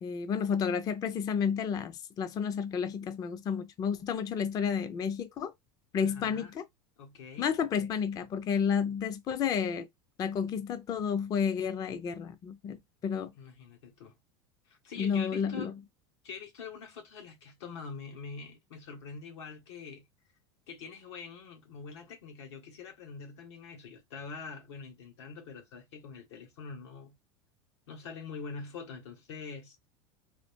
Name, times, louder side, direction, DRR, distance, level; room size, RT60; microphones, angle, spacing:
voice 1, 0.0-5.5 5.9-6.6 7.4-9.9 10.2-13.3 15.0-15.7, left 7 dB, 25° left, 0.4 m, -31 dB
voice 2, 6.0-6.5 7.0-7.5 13.4-14.2 14.7-15.7 16.2-20.1 20.7-27.1 27.9-29.8, left 5 dB, 85° left, 1.6 m, -44 dB
3.9 x 2.4 x 3.5 m
supercardioid pair, 130°, 14 cm